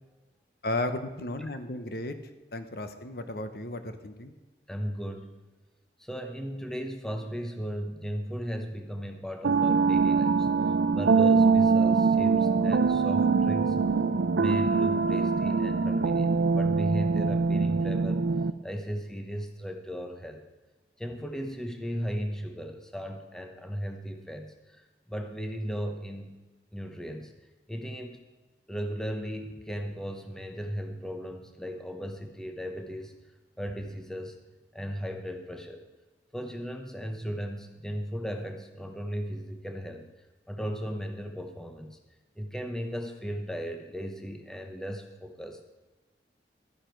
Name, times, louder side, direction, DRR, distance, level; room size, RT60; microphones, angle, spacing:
voice 1, 0.6-2.2 2.5-4.3, left 2 dB, 55° left, 9 dB, 0.9 m, -34 dB
voice 2, 4.7-5.4 6.0-10.5 10.9-13.8 14.4-18.2 18.6-20.4 21.0-24.8 25.1-26.3 26.7-27.3 27.7-28.2 28.7-33.1 33.6-34.4 34.7-35.8 36.3-40.1 40.5-42.0 42.4-45.6, equal, 5° left, 4 dB, 0.8 m, -36 dB
sound 1, 9.4-18.5, right 4 dB, 90° right, 0.5 m, -23 dB
12.5 x 9.9 x 4.5 m, 1.2 s
head